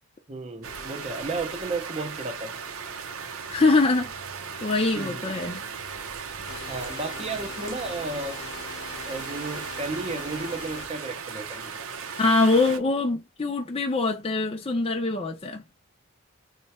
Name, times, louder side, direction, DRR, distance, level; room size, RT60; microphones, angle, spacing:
voice 1, 0.3-2.6 5.0-5.3 6.7-8.4 9.0-11.9, right 3 dB, 30° right, 0.6 m, -33 dB
sound 1, 0.6-12.8, right 6 dB, 85° right, 0.7 m, -37 dB
voice 2, 3.5-4.2 4.6-5.6 12.2-15.6, left 3 dB, 25° left, 0.5 m, -23 dB
sound 2, 6.5-10.9, left 5 dB, 85° left, 0.7 m, -42 dB
3.2 x 2.2 x 4.2 m
head